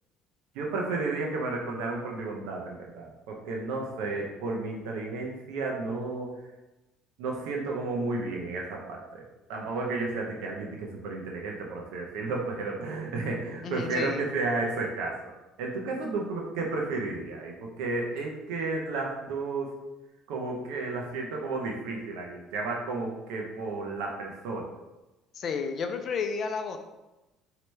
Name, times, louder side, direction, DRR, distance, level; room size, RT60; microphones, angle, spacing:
voice 1, 0.5-6.4 7.2-9.2 9.5-15.3 15.6-19.7 20.3-24.7, right 3 dB, 85° right, 0 dB, 0.7 m, -32 dB
voice 2, 13.6-14.2 25.3-26.8, left 5 dB, 45° left, 6 dB, 0.5 m, -32 dB
4.4 x 2.8 x 3.2 m, 1.0 s
cardioid pair, 105°, 0 cm